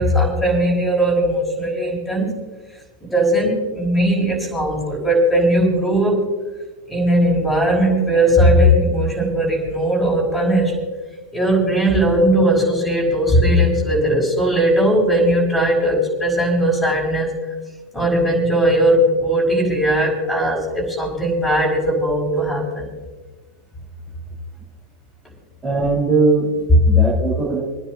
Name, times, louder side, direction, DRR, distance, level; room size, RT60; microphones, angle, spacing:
voice 1, 0.0-2.4 3.0-6.3 6.9-10.8 11.3-17.3 17.9-22.9, equal, 5° left, -3 dB, 5.2 m, -18 dB
voice 2, 25.6-27.6, right 3 dB, 15° right, -6 dB, 3.8 m, -19 dB
28.5 x 9.9 x 2.7 m, 1.3 s
figure-of-eight pair, 90°, 0 cm